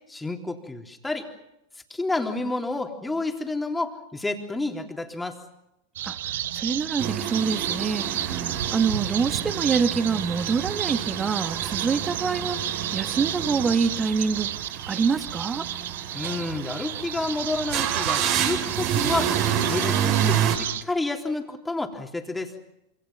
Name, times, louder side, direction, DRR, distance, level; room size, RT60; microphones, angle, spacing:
voice 1, 0.1-1.3 1.9-5.4 16.1-19.3 19.7-22.5, left 2 dB, 10° left, 3 dB, 3.6 m, -29 dB
sound 1, 6.0-20.8, right 12 dB, 60° right, 1.1 m, -32 dB
voice 2, 6.5-14.5 14.9-15.7, right 5 dB, 20° right, 9 dB, 2.0 m, -26 dB
sound 2, 7.0-20.6, right 9 dB, 45° right, 4.4 m, -29 dB
27.5 x 27.0 x 5.8 m, 0.87 s
figure-of-eight pair, 90°, 0 cm